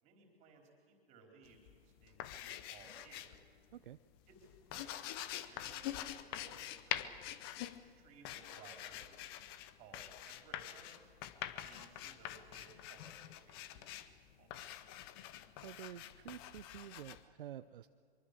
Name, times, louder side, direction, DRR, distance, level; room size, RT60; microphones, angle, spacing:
voice 1, 0.0-3.4 4.3-4.4 4.6-7.6 7.9-11.1 11.6-14.6, right 4 dB, 20° right, 2 dB, 4.2 m, -61 dB
sound 1, 1.5-3.5 3.8-17.2, left 12 dB, 25° left, 0.7 m, -46 dB
voice 2, 15.6-17.9, right 11 dB, 55° right, 12 dB, 0.6 m, -50 dB
23.5 x 23.5 x 6.8 m, 2.3 s
hypercardioid pair, 150°, 32 cm